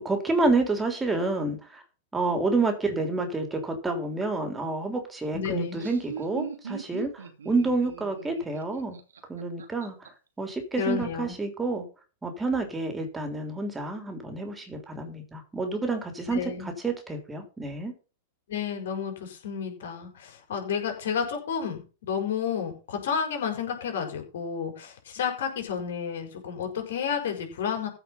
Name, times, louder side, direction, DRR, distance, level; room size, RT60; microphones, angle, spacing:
voice 1, 0.0-1.8 2.1-9.0 9.3-10.1 10.4-11.8 12.2-17.9, right 3 dB, 10° right, 4 dB, 3.4 m, -29 dB
voice 2, 5.3-5.8 10.8-11.4 16.3-16.7 18.5-27.9, left 7 dB, 65° left, 3 dB, 5.3 m, -31 dB
Laughter, 5.5-10.1, right 7 dB, 80° right, 2.5 m, -40 dB
15.0 x 5.9 x 5.7 m, 0.34 s
hypercardioid pair, 105°, 0 cm